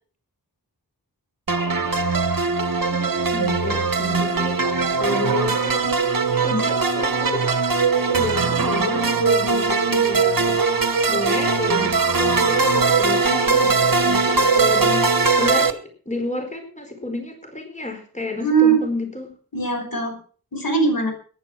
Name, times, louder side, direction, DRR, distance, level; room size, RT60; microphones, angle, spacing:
sound 1, 1.5-15.7, right 4 dB, 60° right, 1.6 m, -20 dB
voice 1, 1.6-2.2 2.8-7.6 8.1-19.3, left 2 dB, 20° left, 4 dB, 4.7 m, -31 dB
voice 2, 18.4-18.8 19.5-20.2 20.5-21.1, right 5 dB, 65° left, 4 dB, 5.2 m, -20 dB
15.0 x 11.0 x 6.2 m, 0.43 s
wide cardioid pair, 65°, 38 cm